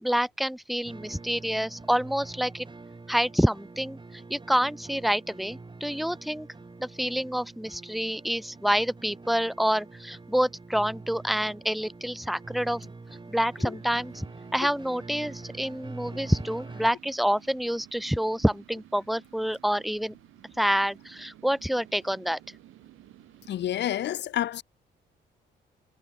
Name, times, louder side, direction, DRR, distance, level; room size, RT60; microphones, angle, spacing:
voice 1, 0.0-2.7 3.1-6.5 6.8-12.9 13.3-14.3 14.5-20.1 20.6-22.4, equal, ahead, 0.6 m, -27 dB
sound 1, 0.8-16.9, right 3 dB, 25° right, 6.7 m, -45 dB
sound 2, 13.8-23.7, right 15 dB, 85° right, 3.4 m, -54 dB
voice 2, 23.5-24.6, left 12 dB, 60° left, 0.7 m, -29 dB
cardioid pair, 90°, 20 cm